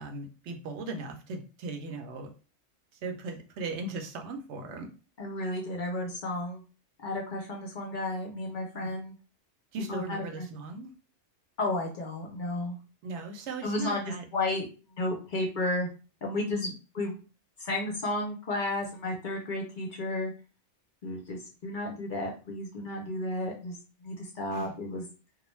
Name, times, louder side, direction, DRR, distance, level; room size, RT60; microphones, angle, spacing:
voice 1, 0.0-2.3 2.9-4.9 8.8-8.9 9.7-10.9 13.0-14.2 16.5-16.7 24.5-24.7, right 3 dB, 75° right, 4 dB, 0.9 m, -38 dB
voice 2, 5.2-6.6 7.0-9.1 9.9-10.5 11.6-12.8 13.6-14.0 14.3-14.6 15.0-15.9 16.2-16.6 17.0-17.1 17.6-20.3 21.0-23.8 24.0-25.1, left 2 dB, 55° left, 0 dB, 0.6 m, -32 dB
2.3 x 2.1 x 3.0 m, 0.34 s
omnidirectional pair, 1.2 m